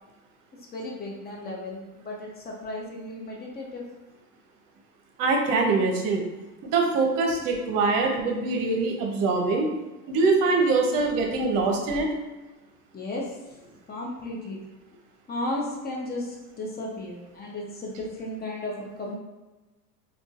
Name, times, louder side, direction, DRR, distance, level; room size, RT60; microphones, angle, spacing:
voice 1, 0.7-3.8 12.9-14.6 15.3-19.2, left 1 dB, 20° left, -2 dB, 0.8 m, -34 dB
voice 2, 5.2-6.3 6.6-9.7 10.1-12.1, right 3 dB, 45° right, 2 dB, 0.8 m, -23 dB
3.8 x 2.4 x 2.4 m, 1.1 s
hypercardioid pair, 90°, 47 cm